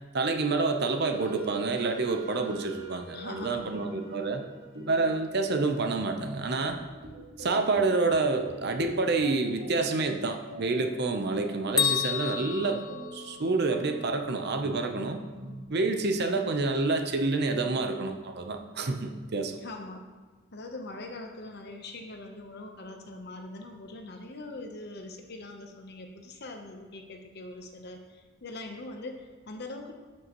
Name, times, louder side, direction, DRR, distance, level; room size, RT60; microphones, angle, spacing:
voice 1, 0.1-4.4 4.9-6.8 7.4-12.8 13.1-15.2 15.7-19.5, right 3 dB, 50° right, 5 dB, 0.7 m, -28 dB
Wind instrument woodwind instrument, 0.8-5.7, right 4 dB, 25° right, 2.7 m, -44 dB
voice 2, 3.1-3.8 19.6-20.0 20.5-29.9, left 2 dB, 50° left, 4 dB, 0.9 m, -42 dB
sound 1, 3.3-15.7, right 1 dB, 85° right, 2.0 m, -46 dB
Bell, 11.8-13.8, left 8 dB, 20° left, 0.4 m, -30 dB
12.0 x 6.4 x 3.1 m, 1.3 s
head